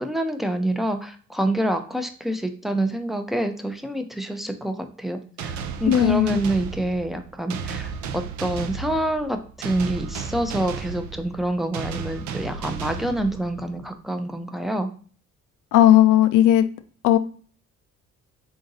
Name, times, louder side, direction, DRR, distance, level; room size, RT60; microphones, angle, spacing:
voice 1, 0.0-5.5 5.8-14.9, right 1 dB, ahead, 6 dB, 0.5 m, -27 dB
sound 1, 5.4-13.8, right 6 dB, 70° right, 0.5 m, -34 dB
voice 2, 5.9-6.4 15.7-16.7 17.0-17.2, left 12 dB, 75° left, 11 dB, 0.5 m, -16 dB
3.8 x 2.6 x 3.9 m, 0.43 s
cardioid pair, 85°, 30 cm